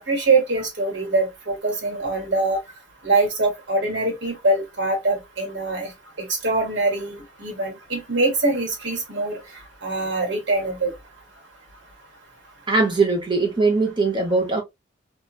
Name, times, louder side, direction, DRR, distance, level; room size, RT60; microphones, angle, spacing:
voice 1, 0.0-2.6 3.0-5.9 6.2-9.4 9.8-10.9, right 2 dB, 65° right, 1.2 m, -23 dB
voice 2, 12.7-14.6, right 3 dB, 25° right, 0.8 m, -20 dB
2.9 x 2.3 x 2.3 m
head